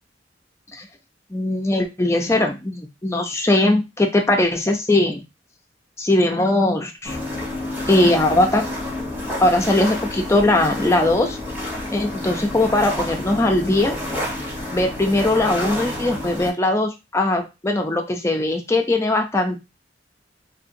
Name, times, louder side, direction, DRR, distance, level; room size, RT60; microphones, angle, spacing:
voice 1, 1.3-5.2 6.0-7.2 7.9-8.6 9.4-11.4 11.9-14.0 14.7-19.6, left 2 dB, 15° left, 3 dB, 0.5 m, -20 dB
sound 1, 7.0-16.5, left 1 dB, 10° right, 1.1 m, -29 dB
2.7 x 2.7 x 2.6 m, 0.25 s
head